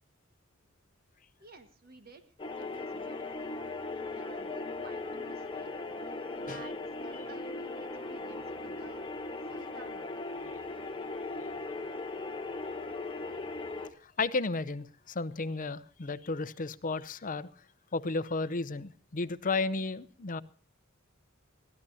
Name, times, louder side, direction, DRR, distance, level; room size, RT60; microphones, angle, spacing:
voice 1, 1.4-3.5 4.1-5.7 6.3-9.0 9.5-10.1, right 2 dB, 50° right, 1.6 m, -53 dB
sound 1, 2.4-13.9, left 3 dB, 25° left, 1.1 m, -38 dB
voice 2, 14.2-17.5 17.9-20.4, left 3 dB, 40° left, 0.7 m, -33 dB
22.0 x 14.5 x 2.8 m
head